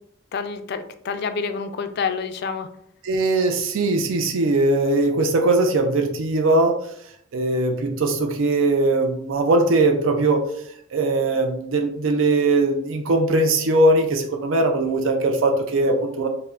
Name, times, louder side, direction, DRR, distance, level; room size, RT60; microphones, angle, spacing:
voice 1, 0.3-2.7, left 5 dB, 55° left, 9 dB, 0.3 m, -28 dB
voice 2, 3.0-6.8 7.3-10.4 10.9-16.3, right 2 dB, 70° right, 4 dB, 0.4 m, -20 dB
5.3 x 2.1 x 2.4 m, 0.71 s
head